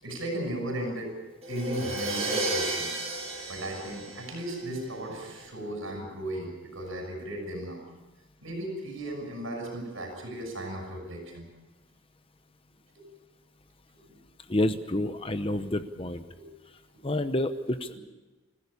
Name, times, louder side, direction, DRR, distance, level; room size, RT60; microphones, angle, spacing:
voice 1, 0.0-1.1 1.5-2.9 3.5-7.8 8.4-11.5 12.9-13.1 13.9-14.2 16.3-16.5 17.9-18.0, right 1 dB, 75° right, 3 dB, 6.4 m, -36 dB
Crash cymbal, 1.4-5.2, right 2 dB, 30° right, 7.4 m, -33 dB
voice 2, 14.5-16.2 17.0-18.0, left 1 dB, 25° left, 10 dB, 0.8 m, -29 dB
26.0 x 15.5 x 8.5 m, 1.2 s
head